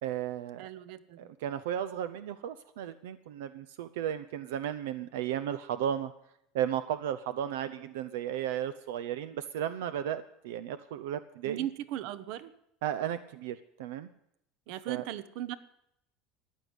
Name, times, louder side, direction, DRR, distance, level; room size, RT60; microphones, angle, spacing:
voice 1, 0.0-0.7 1.2-6.1 6.5-11.6 12.8-14.1 14.9-15.0, right 10 dB, 90° right, 13 dB, 0.7 m, -34 dB
voice 2, 0.6-1.3 11.4-12.5 14.7-15.6, right 12 dB, 65° right, 15 dB, 0.9 m, -38 dB
14.5 x 10.5 x 8.1 m, 0.77 s
supercardioid pair, 130°, 0 cm